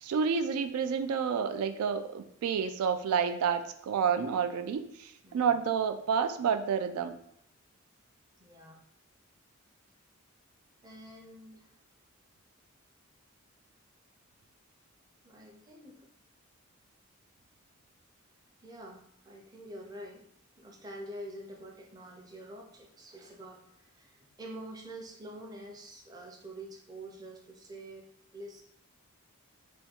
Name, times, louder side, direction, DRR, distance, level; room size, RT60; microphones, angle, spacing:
voice 1, 0.0-7.2, right 6 dB, 85° right, 9 dB, 0.3 m, -29 dB
voice 2, 5.2-5.6 8.4-8.8 10.8-11.7 15.2-16.1 18.6-20.2 20.6-28.1 28.3-28.6, right 1 dB, 20° right, 0 dB, 0.5 m, -47 dB
3.4 x 2.2 x 4.3 m, 0.72 s
head